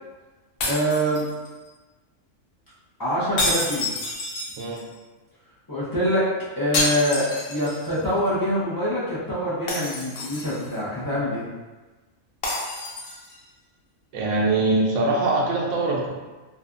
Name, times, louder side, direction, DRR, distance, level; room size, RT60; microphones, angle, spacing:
sound 1, 0.6-1.7 3.4-4.9 6.7-8.0 8.3-8.4 9.7-10.8 12.4-13.4, left 2 dB, 90° left, 1.1 m, -28 dB
voice 1, 0.6-1.3 3.0-3.9 5.7-11.5, equal, 30° left, -10 dB, 0.4 m, -25 dB
voice 2, 14.1-16.1, right 2 dB, 70° right, -2 dB, 0.9 m, -22 dB
2.7 x 2.3 x 2.4 m, 1.2 s
omnidirectional pair, 1.4 m